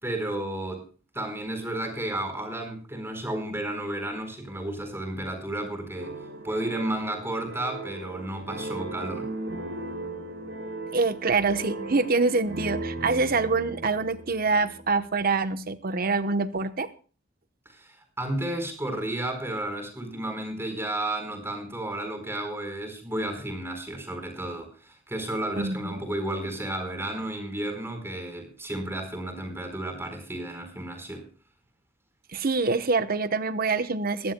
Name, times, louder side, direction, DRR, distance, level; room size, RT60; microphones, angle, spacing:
voice 1, 0.0-0.8 1.1-6.2 6.4-9.3 17.7-31.2, right 1 dB, 15° right, 4 dB, 4.4 m, -32 dB
sound 1, 6.0-15.0, right 2 dB, 90° right, 5.2 m, -37 dB
voice 2, 10.9-16.9 25.6-25.9 32.3-34.3, right 4 dB, 50° right, 12 dB, 0.9 m, -25 dB
21.0 x 15.0 x 2.2 m, 0.38 s
head